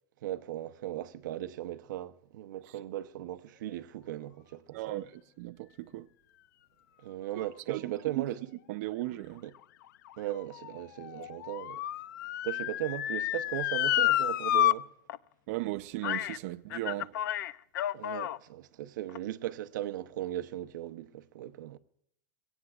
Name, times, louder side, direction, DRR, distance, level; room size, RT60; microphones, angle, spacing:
voice 1, 0.2-4.8 7.0-8.4 9.4-9.5 10.2-11.8 12.4-14.9 17.9-21.8, right 13 dB, 85° right, 0.8 m, -37 dB
voice 2, 4.7-6.1 7.4-8.3 8.7-9.4 15.5-17.2, right 17 dB, 55° right, 0.5 m, -37 dB
Motor vehicle (road) / Siren, 9.5-14.7 15.1-15.2 16.0-16.4 16.7-18.4 19.1-19.2, left 13 dB, 90° left, 0.5 m, -30 dB
23.0 x 18.0 x 2.4 m
supercardioid pair, 165°, 10 cm